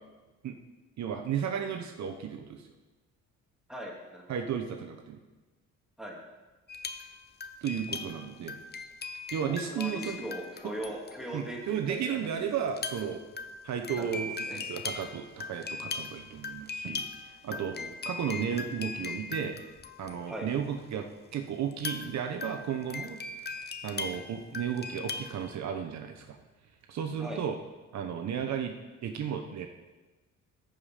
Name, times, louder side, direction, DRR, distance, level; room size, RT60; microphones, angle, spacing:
voice 1, 1.0-2.7 4.3-5.2 7.6-8.6 9.3-10.2 10.6-11.0 11.3-13.2 13.6-17.8 18.0-19.6 20.0-23.2 23.8-26.4 26.9-27.6 27.9-28.8 29.0-29.7, right 8 dB, 65° right, 5 dB, 1.0 m, -34 dB
voice 2, 3.7-4.3 6.0-6.2 9.4-12.3 13.9-14.7 17.5-17.9 20.3-20.5 27.2-27.4, right 1 dB, ahead, -2 dB, 2.6 m, -40 dB
sound 1, 6.7-11.4 12.7-20.6 21.7-25.5, left 4 dB, 35° left, 0.8 m, -40 dB
14.0 x 5.1 x 5.8 m, 1.2 s
cardioid pair, 90°, 30 cm